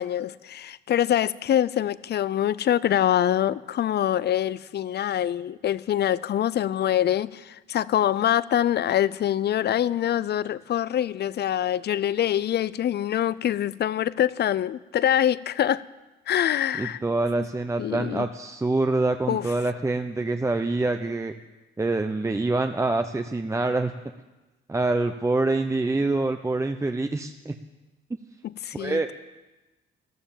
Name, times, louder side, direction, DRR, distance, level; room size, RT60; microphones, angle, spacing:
voice 1, 0.0-15.8 16.3-17.0 17.4-17.5 17.8-18.3 19.3-19.4 28.4-29.1, left 11 dB, 55° left, 19 dB, 0.6 m, -25 dB
voice 2, 16.8-21.3 21.8-23.9 24.7-27.5 28.7-29.1, right 2 dB, 15° right, 7 dB, 0.7 m, -25 dB
14.5 x 12.5 x 7.3 m, 1.1 s
cardioid pair, 90°, 20 cm